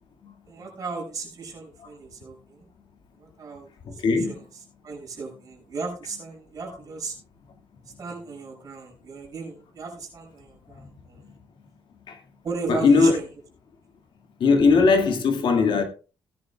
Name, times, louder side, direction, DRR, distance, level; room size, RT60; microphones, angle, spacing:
voice 1, 0.5-2.7 3.2-3.7 3.9-7.2 8.0-11.2 12.4-13.3, right 4 dB, 40° right, 6.2 m, -36 dB
voice 2, 3.9-4.3 12.1-12.2 12.7-13.1 14.4-15.8, left 4 dB, 60° left, 2.1 m, -19 dB
18.0 x 10.5 x 2.3 m
cardioid pair, 150°, 9 cm